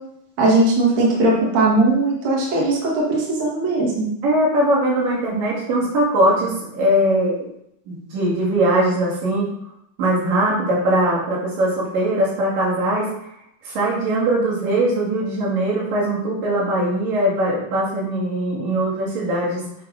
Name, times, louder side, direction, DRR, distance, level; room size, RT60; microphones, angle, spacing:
voice 1, 0.4-4.1, right 2 dB, 60° right, -4 dB, 2.9 m, -18 dB
voice 2, 4.2-7.3 7.9-9.5 10.0-13.1 13.6-19.6, right 1 dB, 80° right, -5 dB, 4.1 m, -20 dB
9.8 x 4.1 x 5.4 m, 0.77 s
omnidirectional pair, 3.9 m